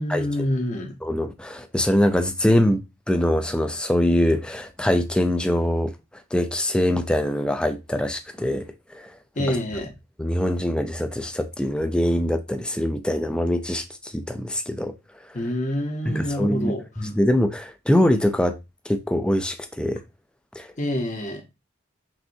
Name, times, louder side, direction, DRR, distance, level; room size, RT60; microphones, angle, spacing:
voice 1, 0.0-0.9 9.3-9.9 15.3-17.1 20.8-21.4, left 1 dB, 40° left, 0.9 m, -27 dB
voice 2, 1.0-2.8 3.1-5.9 6.3-8.6 8.9-9.1 10.2-14.9 16.1-16.7 17.0-18.5 18.9-20.0 20.6-20.7, left 1 dB, 5° left, 0.3 m, -23 dB
5.9 x 2.6 x 2.6 m
head